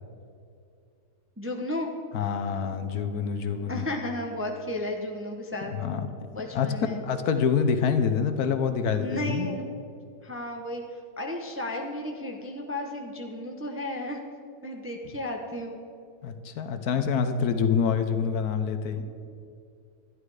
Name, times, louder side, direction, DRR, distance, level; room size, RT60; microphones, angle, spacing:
voice 1, 1.4-1.9 3.7-5.7 6.3-7.0 9.0-9.6 10.2-10.8 11.2-14.2 14.6-15.8 19.0-19.1, left 1 dB, 15° right, 2 dB, 0.6 m, -33 dB
voice 2, 2.1-3.9 5.5-6.1 6.5-6.7 7.0-9.5 16.2-19.0, left 6 dB, 75° left, 8 dB, 1.3 m, -26 dB
11.5 x 11.0 x 4.8 m, 2.5 s
omnidirectional pair, 1.7 m